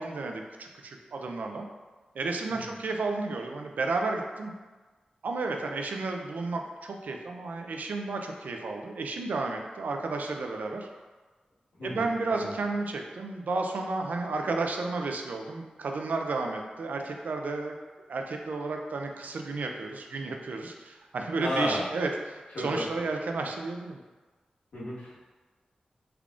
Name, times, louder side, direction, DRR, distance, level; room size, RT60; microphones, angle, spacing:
voice 1, 0.0-1.7 2.1-4.5 5.2-10.9 11.8-17.7 18.1-24.0, right 3 dB, 85° right, 3 dB, 0.4 m, -32 dB
voice 2, 11.8-12.5 21.4-21.8 22.5-22.8 24.7-25.2, left 1 dB, 85° left, -10 dB, 1.4 m, -33 dB
3.4 x 2.4 x 3.6 m, 1.3 s
wide cardioid pair, 110°, 3 cm